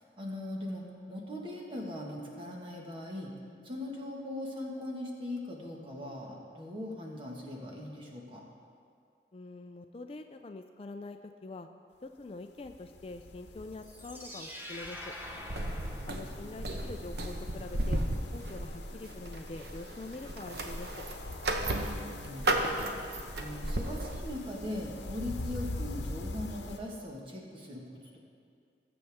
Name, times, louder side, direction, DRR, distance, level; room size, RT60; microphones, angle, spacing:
voice 1, 0.0-3.3 3.6-8.4 15.8-16.2 21.7-22.7 23.4-28.2, left 1 dB, 30° right, -1 dB, 1.5 m, -40 dB
voice 2, 9.3-11.7 12.0-15.1 16.1-18.0 18.3-21.1, left 2 dB, 35° left, 6 dB, 0.4 m, -45 dB
sound 1, 12.6-26.8, left 2 dB, 80° left, 0.9 m, -44 dB
sound 2, 13.7-16.9, left 1 dB, 10° right, 0.8 m, -45 dB
sound 3, 15.2-24.5, right 1 dB, 65° right, 0.9 m, -35 dB
19.0 x 7.8 x 3.6 m, 2.3 s
head